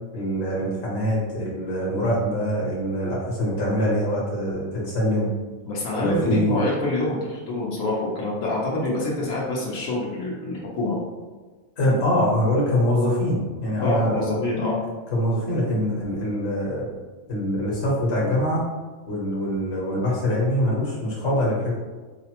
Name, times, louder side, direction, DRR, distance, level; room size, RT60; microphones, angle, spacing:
voice 1, 0.1-5.3 6.0-6.6 11.8-14.4 15.1-16.9 17.3-18.6 19.1-21.7, equal, 50° left, -6 dB, 1.3 m, -24 dB
voice 2, 5.7-11.0 13.8-14.8, left 2 dB, 85° left, -4 dB, 1.2 m, -26 dB
4.8 x 2.1 x 2.9 m, 1.3 s
omnidirectional pair, 1.4 m